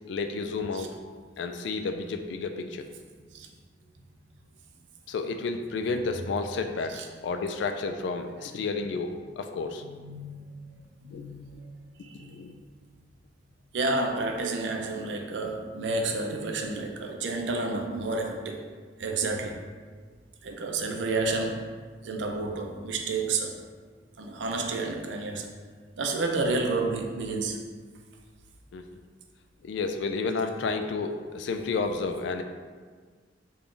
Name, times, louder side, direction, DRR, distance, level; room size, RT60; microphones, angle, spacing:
voice 1, 0.1-0.9 1.4-2.8 5.1-9.8 11.1-11.2 12.3-12.5 28.7-28.8 29.6-32.4, left 4 dB, 75° left, 7 dB, 0.3 m, -31 dB
voice 2, 9.8-11.5 12.0-12.6 13.7-18.7 19.0-19.7 20.4-21.7 22.0-23.6 24.2-25.5 26.0-27.7, right 3 dB, 80° right, 3 dB, 0.4 m, -30 dB
3.6 x 2.3 x 3.8 m, 1.5 s
head